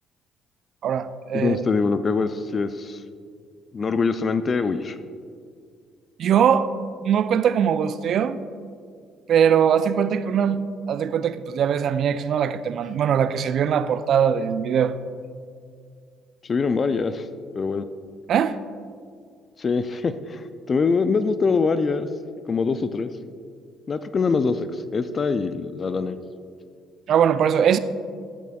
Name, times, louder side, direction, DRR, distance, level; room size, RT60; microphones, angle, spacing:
voice 1, 0.8-1.6 6.2-6.7 7.0-8.4 9.3-10.6 10.9-15.0 18.3-18.6 27.1-27.8, right 8 dB, 55° right, 0.3 m, -21 dB
voice 2, 1.3-3.0 3.7-5.0 16.4-17.3 17.5-17.8 19.6-22.1 22.5-23.1 23.9-26.2, left 4 dB, 40° left, 0.4 m, -24 dB
13.0 x 7.4 x 2.3 m
hypercardioid pair, 50°, 0 cm